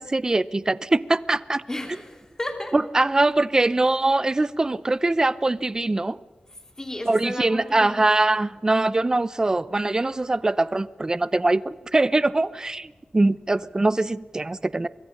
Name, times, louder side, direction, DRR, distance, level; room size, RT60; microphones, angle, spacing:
voice 1, 0.0-1.6 2.7-6.2 7.1-14.9, right 2 dB, 25° right, 18 dB, 0.6 m, -22 dB
voice 2, 1.7-2.7 6.8-8.0, left 1 dB, 20° left, 5 dB, 2.8 m, -33 dB
24.5 x 22.0 x 6.5 m, 1.3 s
wide cardioid pair, 130°, 3 cm